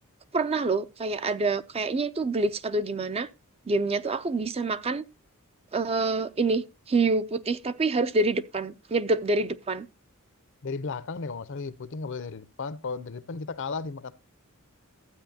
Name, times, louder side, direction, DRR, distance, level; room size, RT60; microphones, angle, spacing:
voice 1, 0.3-3.3 3.7-5.1 5.7-9.9, right 3 dB, 25° right, 0.4 m, -27 dB
voice 2, 10.6-14.1, left 4 dB, 60° left, 0.6 m, -34 dB
12.5 x 8.5 x 2.7 m
head